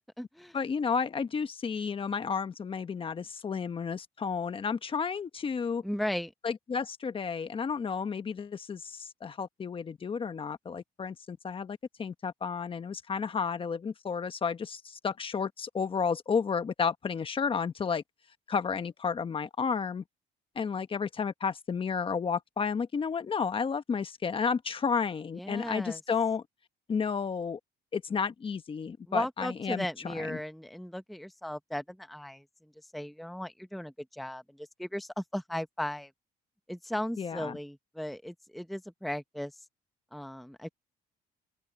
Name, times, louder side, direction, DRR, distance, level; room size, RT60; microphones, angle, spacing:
voice 1, 0.0-0.6 5.8-6.3 25.4-26.0 29.1-32.4 32.9-36.1 36.7-39.5 40.1-40.7, left 1 dB, ahead, 0.9 m, -36 dB
voice 2, 0.5-5.8 6.4-18.0 18.5-20.0 20.5-26.4 26.9-27.6 27.9-30.4 37.2-37.6, left 6 dB, 30° left, 1.2 m, -32 dB
open air
cardioid pair, 110°, 17 cm